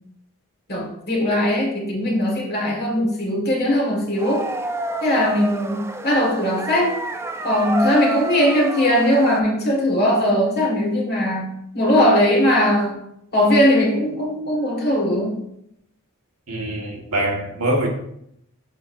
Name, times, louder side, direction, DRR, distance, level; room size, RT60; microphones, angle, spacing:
voice 1, 0.7-4.5 5.0-6.9 7.4-11.5 11.7-13.0 13.3-15.3, equal, 45° left, -1 dB, 1.7 m, -19 dB
sound 1, 4.2-9.4, right 2 dB, 10° right, 0.3 m, -28 dB
voice 2, 16.5-17.9, right 1 dB, 75° right, 0 dB, 1.5 m, -24 dB
7.5 x 5.5 x 2.6 m, 0.75 s
head